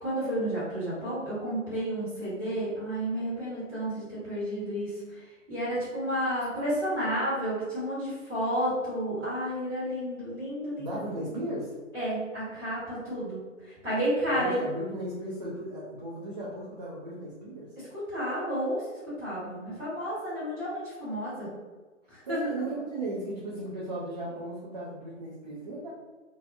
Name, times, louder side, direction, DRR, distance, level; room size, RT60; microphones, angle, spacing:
voice 1, 0.0-11.0 11.9-13.4 13.7-14.5 18.1-21.5 22.1-22.4, equal, 5° right, -15 dB, 1.3 m, -31 dB
voice 2, 10.8-11.8 14.4-17.8 22.2-25.9, right 1 dB, 35° right, -6 dB, 0.4 m, -36 dB
2.6 x 2.2 x 2.5 m, 1.2 s
hypercardioid pair, 155°, 39 cm